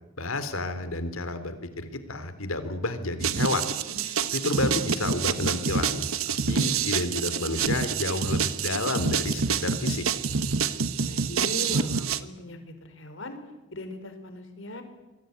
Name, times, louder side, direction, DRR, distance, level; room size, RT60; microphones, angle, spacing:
voice 1, 0.2-3.7 4.0-10.0, left 2 dB, 80° left, 11 dB, 3.2 m, -31 dB
sound 1, 3.2-12.2, right 6 dB, 80° right, 1.2 m, -27 dB
voice 2, 4.4-4.9 11.0-13.4 13.7-14.8, left 1 dB, 65° left, 7 dB, 4.7 m, -39 dB
27.0 x 20.0 x 9.4 m, 1.1 s
head